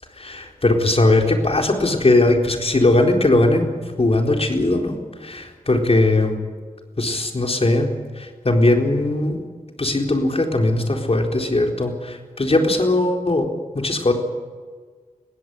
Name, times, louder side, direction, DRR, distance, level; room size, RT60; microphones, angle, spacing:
voice 1, 0.2-3.7 4.0-6.4 7.0-7.9 8.2-9.4 9.8-13.5 13.7-14.1, left 2 dB, 45° left, 3 dB, 4.1 m, -19 dB
21.5 x 16.5 x 8.4 m, 1.5 s
cardioid pair, 45°, 14 cm